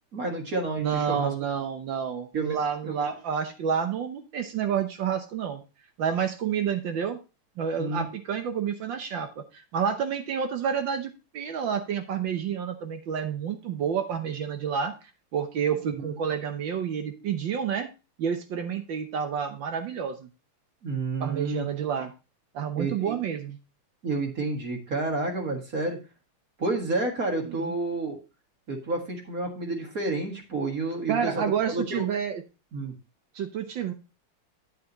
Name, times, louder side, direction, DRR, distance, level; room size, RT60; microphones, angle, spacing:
voice 1, 0.1-1.3 2.3-3.1 7.8-8.1 15.9-16.0 20.8-21.6 22.8-23.2 24.0-26.0 26.6-28.2 28.7-32.1 32.7-32.9, right 2 dB, 40° right, 1 dB, 2.1 m, -30 dB
voice 2, 0.8-5.6 6.0-7.2 7.6-14.9 15.3-17.9 18.2-20.3 21.2-22.1 22.5-23.6 27.4-27.7 31.1-32.4 33.3-33.9, right 7 dB, 65° right, 7 dB, 1.5 m, -29 dB
9.2 x 8.3 x 2.9 m, 0.30 s
omnidirectional pair, 2.4 m